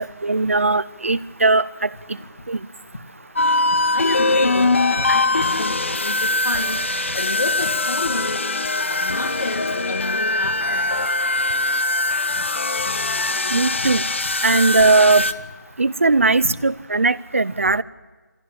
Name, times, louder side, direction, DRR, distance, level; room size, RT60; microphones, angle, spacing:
voice 1, 0.0-1.9 2.5-2.6 13.5-14.0 14.4-15.2 15.8-17.8, right 3 dB, 45° right, 19 dB, 0.6 m, -18 dB
sound 1, 3.4-15.3, left 2 dB, 40° left, 0.8 m, -22 dB
voice 2, 3.9-4.7 5.1-6.8 7.2-8.4 8.9-10.8 16.4-16.5, left 2 dB, 60° left, 6 dB, 2.2 m, -30 dB
25.0 x 16.0 x 8.6 m, 1.3 s
figure-of-eight pair, 180°, 10 cm